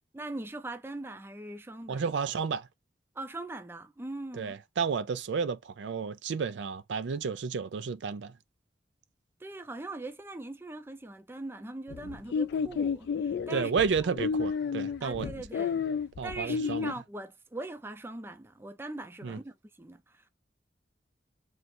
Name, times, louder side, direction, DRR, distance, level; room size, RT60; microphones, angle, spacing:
voice 1, 0.1-2.1 3.1-4.5 9.4-14.1 15.0-15.9 16.2-20.3, right 2 dB, 15° right, 0.4 m, -41 dB
voice 2, 1.9-2.7 4.3-8.3 13.5-15.3 16.2-16.9 19.2-19.4, right 5 dB, 80° right, 0.4 m, -31 dB
sound 1, 11.9-16.9, left 6 dB, 65° left, 0.3 m, -31 dB
3.3 x 2.5 x 4.2 m
head